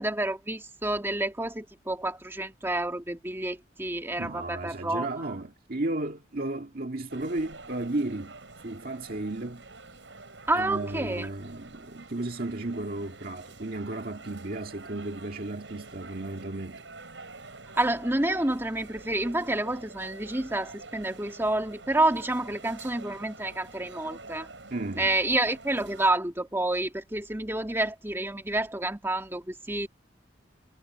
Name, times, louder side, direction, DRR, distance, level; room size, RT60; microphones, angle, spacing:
voice 1, 0.0-5.1 10.5-11.3 17.8-24.5 25.0-29.9, right 2 dB, 15° right, 1.9 m, -29 dB
voice 2, 4.2-9.7 10.5-16.8 24.7-25.1, right 2 dB, 55° right, 1.9 m, -34 dB
sound 1, 7.1-26.1, right 3 dB, 80° right, 6.4 m, -48 dB
head